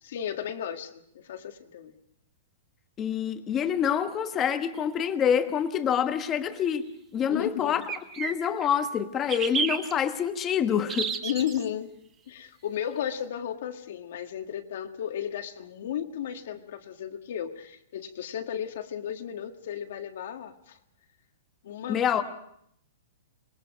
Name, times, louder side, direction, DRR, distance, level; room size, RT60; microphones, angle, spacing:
voice 1, 0.0-2.0 7.3-7.8 11.2-11.9 12.3-20.8 21.6-22.3, left 9 dB, 55° left, 5 dB, 1.7 m, -34 dB
voice 2, 3.0-6.8 7.1-7.8 8.2-11.2 21.9-22.2, left 8 dB, 15° left, 9 dB, 1.1 m, -26 dB
sound 1, 4.8-4.9 7.8-8.7 9.3-9.9 10.9-11.6, right 6 dB, 15° right, 1.4 m, -30 dB
26.5 x 21.5 x 5.1 m, 0.71 s
hypercardioid pair, 170°, 0 cm